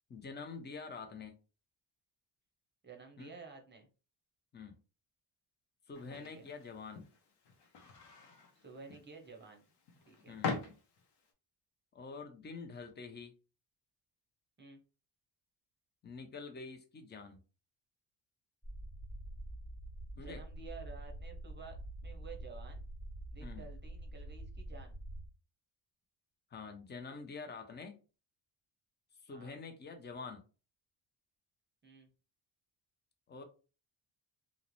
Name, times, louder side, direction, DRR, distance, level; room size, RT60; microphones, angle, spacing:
voice 1, 0.1-1.4 3.2-3.3 4.5-4.7 5.9-7.1 10.3-10.5 11.9-13.3 16.0-17.4 20.2-20.4 23.4-23.7 26.5-28.0 29.2-30.4 33.3-33.4, left 4 dB, 25° left, 0.5 m, -46 dB
voice 2, 2.8-3.9 6.1-6.5 8.6-9.6 10.1-10.4 14.6-14.8 20.2-21.8 22.0-22.8 23.3-25.0 29.3-29.6 31.8-32.1, right 4 dB, 25° right, 0.7 m, -52 dB
sound 1, 5.9-11.3, left 4 dB, 55° left, 0.7 m, -44 dB
sound 2, 18.6-25.3, right 1 dB, 10° left, 1.3 m, -46 dB
2.4 x 2.1 x 2.9 m
cardioid pair, 90°, 47 cm